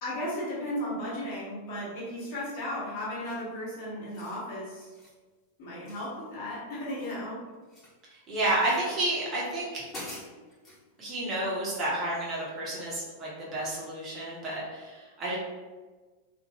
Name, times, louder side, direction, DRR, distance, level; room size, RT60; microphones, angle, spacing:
voice 1, 0.0-4.9 5.6-7.4, left 1 dB, 50° left, -7 dB, 1.3 m, -35 dB
sound 1, 3.2-3.6 4.0-4.4 4.8-5.2 5.8-6.5 6.8-8.0 8.6-9.0 9.5-9.6 9.9-10.8, left 1 dB, 20° left, 1.2 m, -46 dB
voice 2, 8.1-9.9 11.0-15.4, right 1 dB, 30° right, -6 dB, 1.0 m, -31 dB
2.6 x 2.5 x 2.9 m, 1.3 s
figure-of-eight pair, 90°, 0 cm